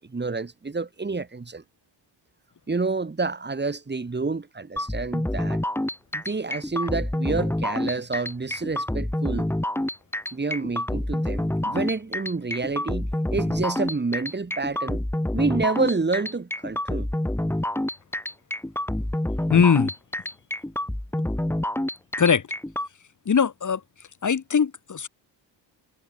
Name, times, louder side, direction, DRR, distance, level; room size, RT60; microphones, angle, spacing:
voice 1, 0.0-1.6 2.7-5.6 6.1-9.5 10.3-15.0 15.3-17.1, right 3 dB, 20° right, 7.9 m, -28 dB
sound 1, 4.8-22.9, left 1 dB, 5° left, 7.3 m, -27 dB
voice 2, 19.5-19.9 22.2-22.4 23.3-23.8 24.2-25.1, left 6 dB, 40° left, 7.0 m, -21 dB
cardioid pair, 135°, 46 cm